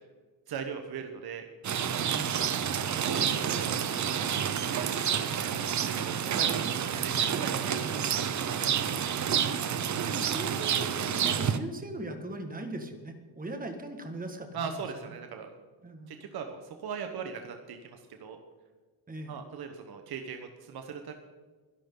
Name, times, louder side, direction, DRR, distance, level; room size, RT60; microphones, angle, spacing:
voice 1, 0.5-1.4 2.9-8.8 14.5-15.5 16.1-18.4 19.3-21.1, right 6 dB, 55° right, 5 dB, 1.3 m, -40 dB
Rain, 1.6-11.6, right 8 dB, 40° right, 0.8 m, -29 dB
voice 2, 2.0-2.4 9.8-14.8 15.8-16.1 19.1-19.4, right 1 dB, 20° right, 5 dB, 1.9 m, -40 dB
23.5 x 11.0 x 3.9 m, 1.4 s
cardioid pair, 165°, 44 cm